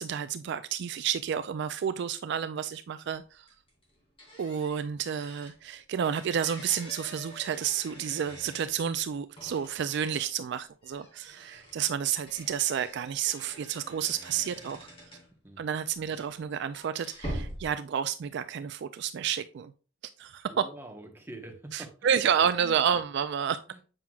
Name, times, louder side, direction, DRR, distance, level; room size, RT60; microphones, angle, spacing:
voice 1, 0.0-3.5 4.4-14.9 15.6-19.7 20.2-20.7 21.7-23.6, right 8 dB, 60° right, 0.3 m, -30 dB
sound 1, 3.0-3.2 3.5-5.6 6.0-8.9 9.4-10.3 10.8-15.4 15.9-17.7, equal, 30° left, 2.7 m, -45 dB
voice 2, 20.5-22.5 23.7-23.8, right 1 dB, 10° right, 1.1 m, -46 dB
7.7 x 5.7 x 2.4 m
head